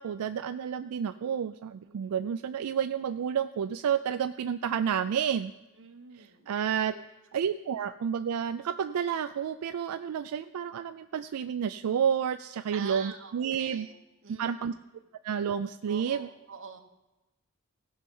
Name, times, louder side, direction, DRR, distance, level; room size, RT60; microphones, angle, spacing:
voice 1, 0.0-5.5 6.1-6.9 7.3-13.9 14.3-14.7 15.2-16.3, right 8 dB, 90° right, 10 dB, 0.4 m, -30 dB
voice 2, 1.8-2.2 5.8-7.1 12.7-14.7 15.9-16.8, right 6 dB, 60° right, 5 dB, 1.1 m, -46 dB
16.5 x 5.6 x 5.4 m, 1.0 s
head